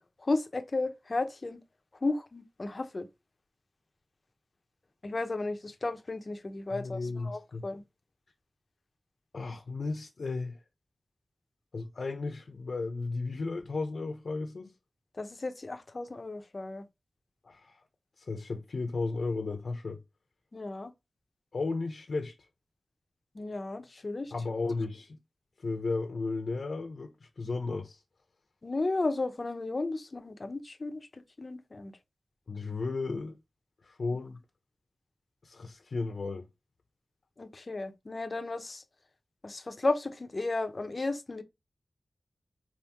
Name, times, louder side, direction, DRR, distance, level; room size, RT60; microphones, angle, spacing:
voice 1, 0.2-1.6 2.0-3.1 5.0-7.8 15.2-16.8 20.5-20.9 23.3-24.3 28.6-31.1 31.4-31.9 37.4-38.8 39.4-41.4, left 2 dB, 45° left, 0.7 m, -34 dB
voice 2, 6.7-7.7 9.3-10.6 11.7-14.7 17.4-17.8 18.2-20.0 21.5-22.4 24.3-25.2 25.6-28.0 32.5-33.4 33.8-34.4 35.4-36.5, left 3 dB, 75° left, 0.8 m, -34 dB
4.7 x 3.6 x 2.9 m
wide cardioid pair, 95°, 0 cm